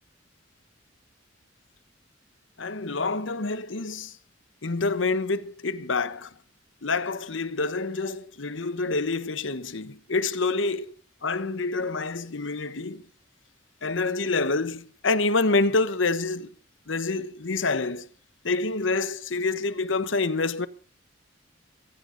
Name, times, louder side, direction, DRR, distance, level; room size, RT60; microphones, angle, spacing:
voice 1, 2.6-4.1 4.6-6.3 6.8-10.9 11.2-13.0 13.8-16.5 16.9-18.1 18.4-20.7, left 3 dB, 75° left, 1.1 m, -27 dB
19.5 x 16.0 x 4.0 m
head